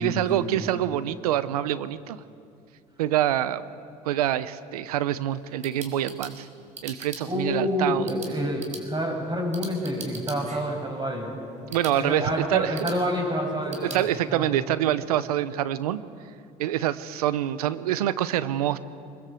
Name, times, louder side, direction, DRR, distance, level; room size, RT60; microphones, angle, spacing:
voice 1, 0.0-2.2 3.0-3.6 4.0-6.5 6.8-8.1 11.7-12.9 13.7-16.0 16.6-18.8, right 12 dB, 90° right, 15 dB, 0.8 m, -26 dB
sound 1, 5.3-14.0, right 3 dB, 40° right, 4.9 m, -44 dB
voice 2, 7.3-11.4 11.9-14.6, equal, 25° right, 2 dB, 7.0 m, -28 dB
22.5 x 21.0 x 7.7 m, 2.5 s
hypercardioid pair, 70°, 19 cm